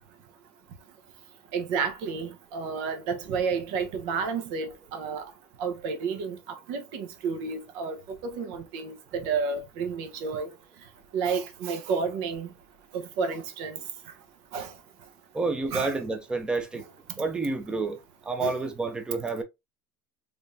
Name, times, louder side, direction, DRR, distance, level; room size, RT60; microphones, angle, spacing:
voice 1, 1.5-5.3 5.6-10.5 11.1-12.5 12.9-13.8 14.5-14.7 15.7-15.9 18.4-18.6, right 5 dB, 65° right, 1.0 m, -31 dB
voice 2, 15.3-16.8 17.2-19.4, right 3 dB, 10° right, 0.6 m, -29 dB
3.6 x 3.4 x 2.6 m
cardioid pair, 165°, 7 cm